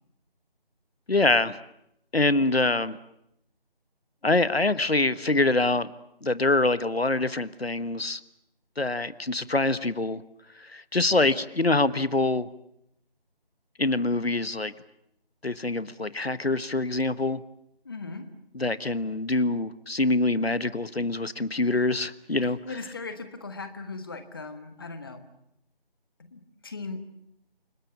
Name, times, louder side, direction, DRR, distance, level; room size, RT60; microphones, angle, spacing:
voice 1, 1.1-1.6 2.1-3.0 4.2-5.9 6.2-8.2 8.8-10.2 10.6-12.5 13.8-14.7 15.4-17.4 18.5-22.6, left 2 dB, 80° left, 16 dB, 1.3 m, -25 dB
voice 2, 17.8-18.2 22.4-25.2 26.2-27.0, left 3 dB, 25° left, 9 dB, 1.5 m, -38 dB
29.0 x 20.0 x 8.5 m, 0.77 s
figure-of-eight pair, 160°, 30 cm